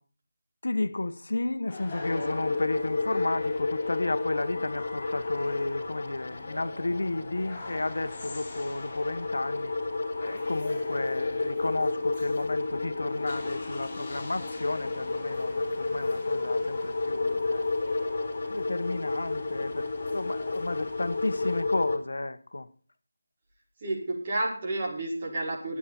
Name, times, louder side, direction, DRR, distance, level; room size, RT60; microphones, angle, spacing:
voice 1, 0.6-9.7 10.2-17.7 18.5-22.7, left 2 dB, 80° left, 1.2 m, -32 dB
sound 1, 1.7-21.6, left 2 dB, 20° left, 5.4 m, -45 dB
sound 2, 2.0-22.0, left 3 dB, 55° left, 3.2 m, -32 dB
voice 2, 23.8-25.8, right 2 dB, 30° right, 5.2 m, -30 dB
22.5 x 8.6 x 4.4 m
figure-of-eight pair, 170°, 0 cm